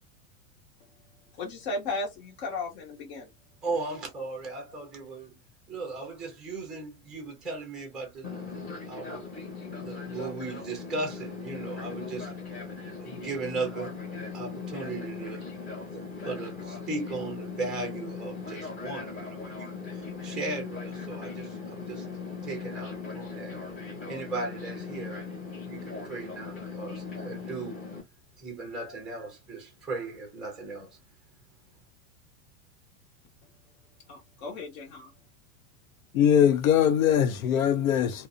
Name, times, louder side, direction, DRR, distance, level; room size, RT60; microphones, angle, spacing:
voice 1, 1.4-3.3 34.1-35.1, left 3 dB, 50° left, 0.8 m, -35 dB
voice 2, 3.6-5.4 5.7-9.3 9.8-12.3 13.0-14.0 14.3-15.4 15.8-22.1 22.4-23.6 24.1-25.2 25.6-27.8 28.4-31.0, right 3 dB, ahead, 0.4 m, -37 dB
Fixed-wing aircraft airplane, 8.2-28.0, left 5 dB, 20° left, 0.9 m, -39 dB
voice 3, 36.1-38.3, left 9 dB, 90° left, 0.7 m, -22 dB
2.5 x 2.0 x 2.4 m
supercardioid pair, 155°, 40 cm